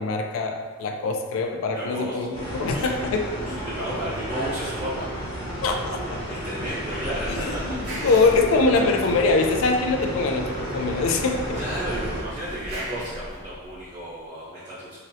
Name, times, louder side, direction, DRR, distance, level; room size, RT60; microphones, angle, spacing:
voice 1, 0.0-2.3 2.5-3.6 5.6-6.2 7.4-11.6, left 3 dB, 75° left, 4 dB, 0.3 m, -23 dB
voice 2, 1.7-2.2 2.7-2.9 3.4-5.1 6.3-8.3 11.5-15.0, right 1 dB, 30° right, -12 dB, 0.6 m, -33 dB
sound 1, 2.3-12.2, equal, 25° left, 0.9 m, -32 dB
sound 2, 6.8-9.2 10.9-14.0, right 1 dB, 80° right, 1.4 m, -38 dB
3.8 x 2.0 x 2.6 m, 1.5 s
head